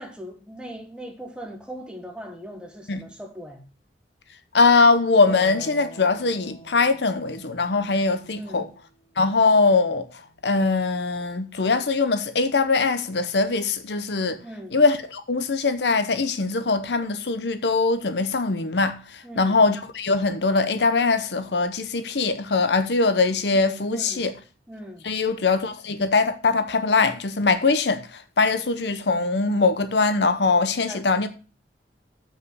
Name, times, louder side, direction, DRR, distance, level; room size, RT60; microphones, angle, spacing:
voice 1, 0.0-3.7 8.4-8.7 14.4-14.8 19.2-19.6 23.9-24.3 24.7-25.1 30.9-31.3, equal, 5° right, 1.3 m, -39 dB
voice 2, 4.5-8.7 9.2-10.1 10.4-14.4 14.7-24.3 25.0-31.3, left 3 dB, 65° left, 0.8 m, -22 dB
Harp, 5.2-11.8 13.4-14.4, right 2 dB, 50° left, 2.5 m, -46 dB
7.4 x 5.6 x 6.2 m
head